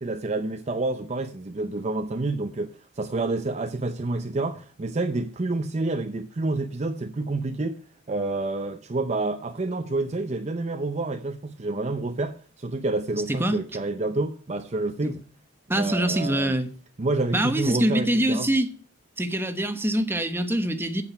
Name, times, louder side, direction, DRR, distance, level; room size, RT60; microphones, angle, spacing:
voice 1, 0.0-7.8 8.1-15.2 15.7-16.6 17.0-18.5, right 2 dB, 35° right, 0.6 m, -28 dB
voice 2, 13.3-13.6 15.0-15.1 15.7-16.7 17.3-18.7 19.2-21.0, right 1 dB, 10° right, 1.1 m, -24 dB
8.7 x 7.9 x 5.8 m
head